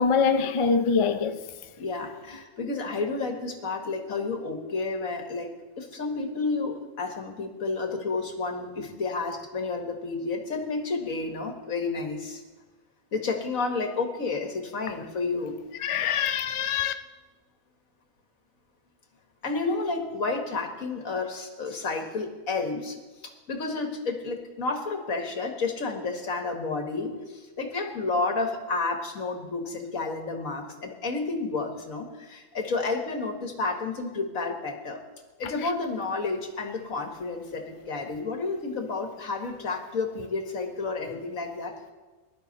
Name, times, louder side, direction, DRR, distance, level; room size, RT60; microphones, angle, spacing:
voice 1, 0.0-1.4 15.8-16.9, left 5 dB, 45° left, 0.4 m, -24 dB
voice 2, 1.8-5.5 5.8-12.4 13.1-15.6 16.0-16.2 19.4-23.0 23.5-35.0 35.4-41.7, left 3 dB, 80° left, 2.1 m, -31 dB
20.5 x 11.5 x 4.1 m
omnidirectional pair, 1.4 m